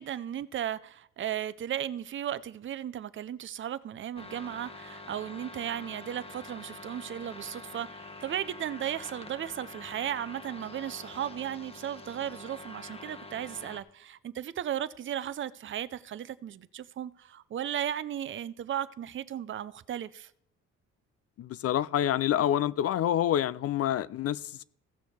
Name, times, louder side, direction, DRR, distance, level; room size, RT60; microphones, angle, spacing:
voice 1, 0.0-20.3, right 10 dB, 40° right, 0.5 m, -35 dB
sound 1, 4.2-13.8, left 2 dB, 20° left, 1.1 m, -46 dB
voice 2, 21.4-24.6, left 11 dB, 55° left, 0.4 m, -27 dB
15.5 x 6.2 x 4.3 m
cardioid pair, 90°, 30 cm